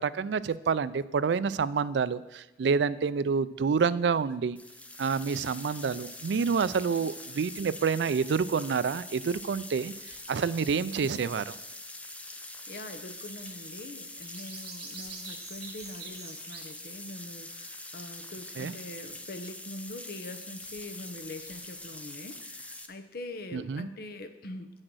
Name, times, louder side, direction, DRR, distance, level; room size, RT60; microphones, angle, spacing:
voice 1, 0.0-4.6 5.0-9.9 10.3-11.5 18.6-18.7 23.5-23.9, right 5 dB, 80° right, 16 dB, 0.4 m, -28 dB
sound 1, 4.6-22.9, left 2 dB, 10° left, 0.6 m, -44 dB
sound 2, 10.1-11.7 13.2-13.8 14.1-16.7, right 5 dB, 65° right, 1.4 m, -48 dB
voice 2, 12.7-24.7, left 1 dB, 60° left, 8 dB, 0.8 m, -43 dB
8.8 x 6.5 x 6.2 m, 0.94 s
head